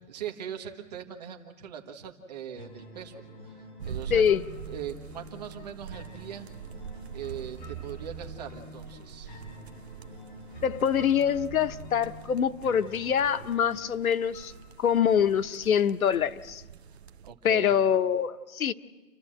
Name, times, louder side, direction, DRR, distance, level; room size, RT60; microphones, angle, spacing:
voice 1, 0.1-3.6 3.8-4.3 4.6-6.5 7.1-9.4 17.2-17.8, right 9 dB, 30° right, 1.6 m, -40 dB
sound 1, 2.5-15.5, right 1 dB, 35° left, 5.2 m, -46 dB
sound 2, 3.8-17.3, right 7 dB, 50° right, 0.9 m, -45 dB
voice 2, 4.1-4.4 10.6-14.5 14.8-16.6 17.4-18.7, left 8 dB, 90° left, 1.0 m, -25 dB
29.5 x 13.0 x 7.7 m
hypercardioid pair, 175°, 41 cm